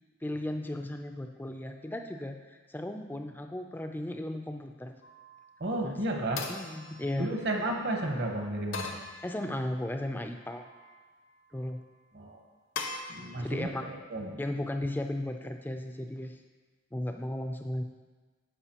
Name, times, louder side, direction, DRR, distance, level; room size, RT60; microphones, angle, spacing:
voice 1, 0.2-5.0 5.8-6.2 6.5-7.3 9.2-10.7 11.5-11.8 13.4-13.8 14.4-16.4 16.9-17.8, left 1 dB, 10° left, 5 dB, 0.3 m, -35 dB
sound 1, 5.0-5.5 6.4-7.7 8.7-9.8 10.4-11.0 12.8-13.0, left 4 dB, 70° left, 0.7 m, -41 dB
voice 2, 5.6-6.4 7.2-9.0 12.1-12.4 13.1-14.4, right 1 dB, 55° right, 1 dB, 1.0 m, -33 dB
12.5 x 5.1 x 2.9 m, 1.4 s
head